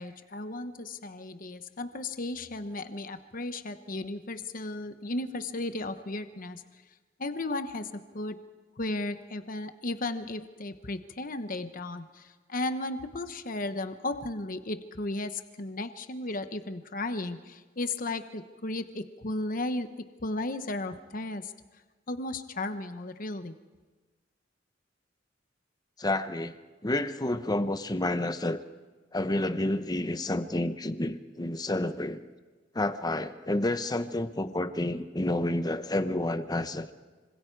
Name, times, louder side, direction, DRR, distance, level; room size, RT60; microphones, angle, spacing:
voice 1, 0.0-6.6 7.2-8.4 8.8-19.9 20.2-21.5 22.1-23.5, left 2 dB, 45° left, 9 dB, 1.1 m, -35 dB
voice 2, 26.0-26.5 26.8-28.6 29.1-32.3 32.7-36.9, left 1 dB, 20° left, 10 dB, 0.9 m, -29 dB
26.0 x 25.5 x 4.7 m, 1.4 s
head